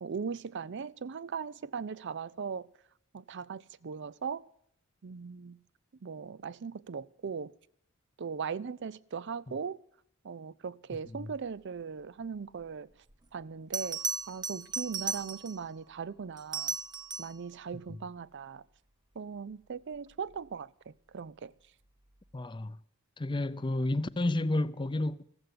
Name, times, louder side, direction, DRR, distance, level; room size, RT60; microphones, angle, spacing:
voice 1, 0.0-2.7 3.1-4.5 5.0-5.6 6.0-7.5 8.2-9.8 10.2-12.9 13.3-16.8 17.2-18.6 19.2-21.5, right 6 dB, 60° right, 0.5 m, -39 dB
Bell, 13.1-13.2 13.7-15.7 16.4-17.4 20.1-20.4, right 5 dB, 20° right, 0.6 m, -36 dB
voice 2, 22.3-22.8 23.2-25.2, left 2 dB, 25° left, 0.5 m, -31 dB
15.0 x 7.9 x 9.5 m
head